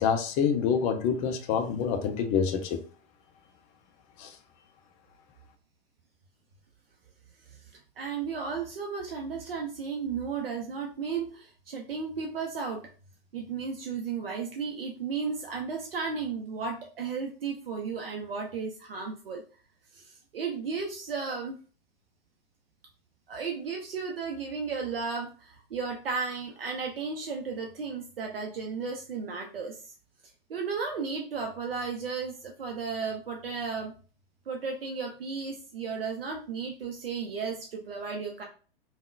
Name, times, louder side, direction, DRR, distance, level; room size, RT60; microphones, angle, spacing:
voice 1, 0.0-2.8 4.2-4.3, left 7 dB, 25° left, 7 dB, 0.4 m, -27 dB
voice 2, 8.0-12.8 13.3-19.4 19.9-21.6 23.3-29.9 30.5-33.9 34.5-38.4, right 5 dB, 70° right, 1 dB, 0.6 m, -34 dB
3.5 x 2.2 x 2.3 m, 0.38 s
figure-of-eight pair, 100°, 29 cm